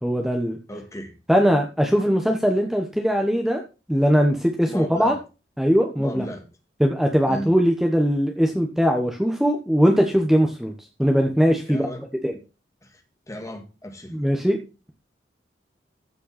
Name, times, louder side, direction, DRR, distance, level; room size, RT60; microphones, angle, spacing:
voice 1, 0.0-0.6 1.3-3.6 3.9-5.1 5.6-6.2 6.8-10.7 11.0-11.9 12.2-12.3 14.1-14.6, equal, ahead, 2 dB, 1.1 m, -20 dB
voice 2, 0.7-1.1 4.7-5.2 6.0-6.4 7.3-7.5 11.7-12.0 12.8-13.0 13.3-14.1, equal, 20° left, 5 dB, 1.9 m, -35 dB
14.5 x 5.4 x 4.1 m, 0.31 s
head